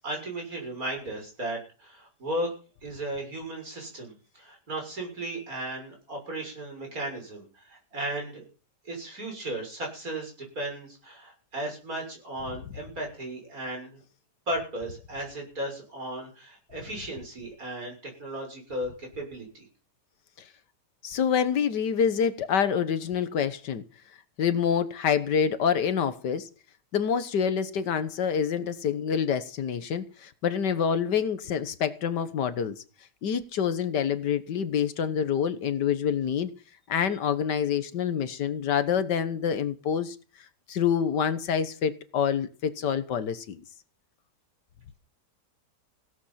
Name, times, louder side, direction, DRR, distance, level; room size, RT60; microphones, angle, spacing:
voice 1, 0.0-2.5 2.8-8.4 8.9-14.0 14.5-19.6, right 1 dB, 55° right, 7.1 m, -35 dB
voice 2, 21.0-23.8 24.4-26.5 26.9-32.8 33.2-36.5 36.9-40.2 40.7-43.6, left 7 dB, 85° left, 1.8 m, -27 dB
16.5 x 13.0 x 5.8 m
omnidirectional pair, 1.8 m